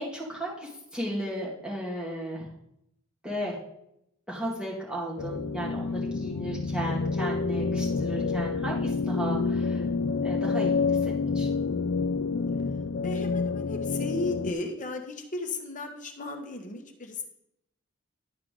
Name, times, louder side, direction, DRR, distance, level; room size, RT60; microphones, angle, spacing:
voice 1, 0.0-2.5 3.2-3.6 4.3-9.8 10.2-11.5, equal, 5° right, -5 dB, 2.0 m, -35 dB
sound 1, 5.2-14.5, left 4 dB, 55° left, 0.4 m, -28 dB
voice 2, 13.0-17.2, left 2 dB, 35° left, 3 dB, 1.1 m, -35 dB
11.5 x 4.7 x 3.7 m, 0.79 s
head